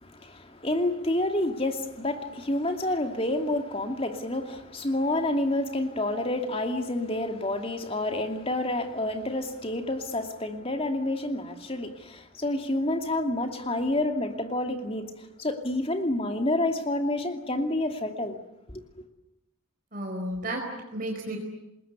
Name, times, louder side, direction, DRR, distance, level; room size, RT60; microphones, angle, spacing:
voice 1, 0.0-15.1 15.4-18.4 18.7-18.8, left 1 dB, 25° left, 6 dB, 2.5 m, -29 dB
voice 2, 19.9-21.4, right 1 dB, 40° right, 1 dB, 4.6 m, -33 dB
27.5 x 21.0 x 9.7 m, 0.89 s
head